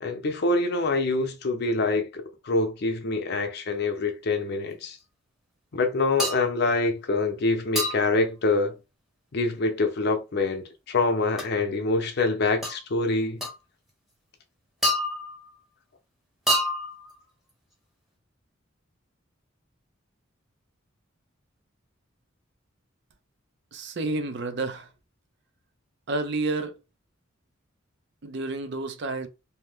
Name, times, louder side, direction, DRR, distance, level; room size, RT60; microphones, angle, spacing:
voice 1, 0.0-5.0 5.7-8.7 9.3-13.4, left 3 dB, 55° left, 0.6 m, -25 dB
sound 1, 6.2-6.5 7.8-8.2 11.4-11.5 12.6-12.8 13.4-13.6 14.8-15.5 16.5-17.1, left 1 dB, ahead, 0.7 m, -27 dB
voice 2, 23.7-24.9 26.1-26.7 28.2-29.3, right 2 dB, 60° right, 0.5 m, -30 dB
2.8 x 2.1 x 3.3 m
head